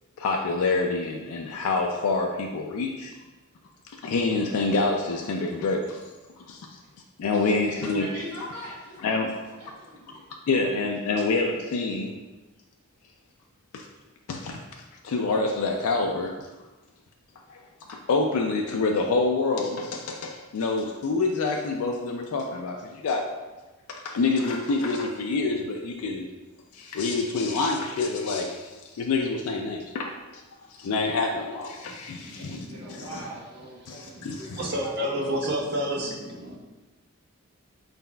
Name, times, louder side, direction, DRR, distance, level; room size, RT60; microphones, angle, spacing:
voice 1, 0.2-3.1 4.0-6.0 6.5-6.8 7.2-8.0 9.0-9.3 10.1-10.2 10.5-12.1 13.7-13.9 14.3-14.6 15.0-16.5 17.5-17.6 17.9-23.2 23.9-26.3 26.7-30.4 30.7-33.1 33.9-34.7, left 3 dB, 85° left, 1 dB, 0.4 m, -27 dB
voice 2, 7.6-9.2 9.6-10.3 32.7-35.4, equal, 80° right, -8 dB, 1.0 m, -41 dB
voice 3, 32.2-33.3 34.6-36.6, equal, 45° right, -2 dB, 0.6 m, -30 dB
4.1 x 3.9 x 2.2 m, 1.2 s
head